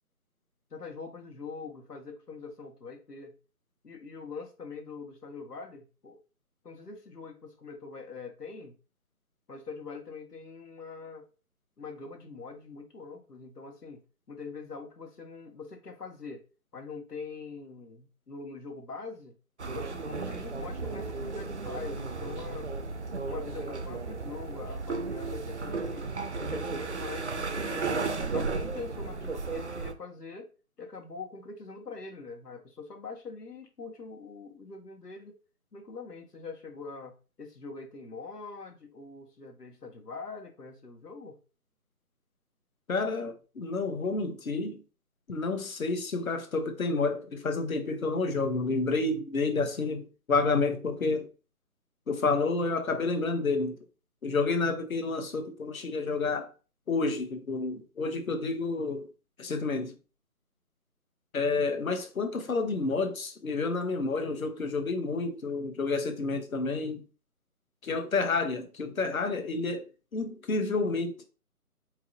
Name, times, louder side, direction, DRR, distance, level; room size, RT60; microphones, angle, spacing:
voice 1, 0.7-3.4 3.8-6.2 6.6-8.7 9.5-11.3 11.8-14.0 14.3-16.4 16.7-19.3 19.7-22.7 23.3-26.1 26.4-27.9 28.3-30.5 30.8-35.4 35.7-41.4, left 4 dB, 90° left, 1.5 m, -43 dB
sound 1, 19.6-29.9, right 4 dB, 50° right, 0.5 m, -34 dB
voice 2, 42.9-44.8 45.3-51.3 52.1-53.8 54.2-56.5 56.9-59.1 59.4-60.0 61.3-67.0 67.8-69.8 70.1-71.2, left 3 dB, 65° left, 1.1 m, -29 dB
4.7 x 3.0 x 2.6 m
figure-of-eight pair, 165°, 46 cm